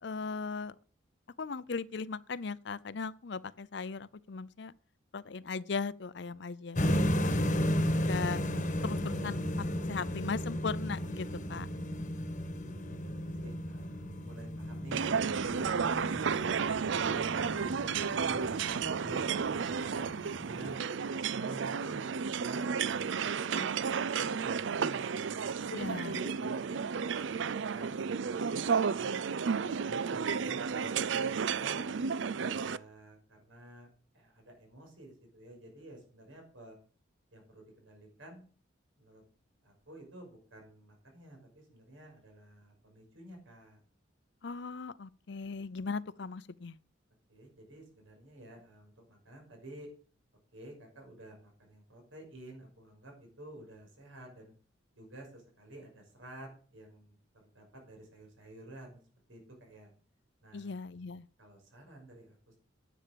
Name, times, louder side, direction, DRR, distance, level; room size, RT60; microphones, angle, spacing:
voice 1, 0.0-0.7 1.4-4.7 5.1-7.3 7.9-8.4 8.8-11.7 25.7-26.2 44.4-46.8 60.5-61.3, left 4 dB, 60° left, 0.5 m, -38 dB
sound 1, 6.8-20.7, equal, 40° left, 1.2 m, -34 dB
voice 2, 12.0-15.0 15.5-17.5 17.9-19.2 19.6-20.8 21.3-23.7 24.2-26.9 27.3-29.2 29.6-31.8 32.4-36.8 37.3-38.5 39.0-39.2 39.6-43.8 47.3-49.9 50.5-54.5 55.0-59.0 59.3-59.9 60.4-60.7 61.4-62.6, right 1 dB, 85° right, 6.1 m, -51 dB
sound 2, 14.9-32.8, right 6 dB, 70° right, 0.5 m, -32 dB
10.0 x 8.6 x 6.8 m
head